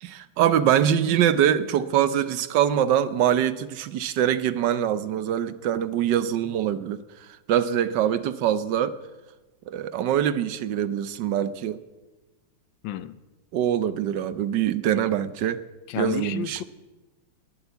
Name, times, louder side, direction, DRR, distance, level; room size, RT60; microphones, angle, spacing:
voice 1, 0.0-7.0 7.5-9.0 9.7-11.8 13.5-15.6 16.0-16.6, right 10 dB, 70° right, 1.3 m, -23 dB
voice 2, 12.8-13.2 15.9-16.6, left 12 dB, 75° left, 1.4 m, -31 dB
20.5 x 8.1 x 8.2 m
omnidirectional pair, 2.2 m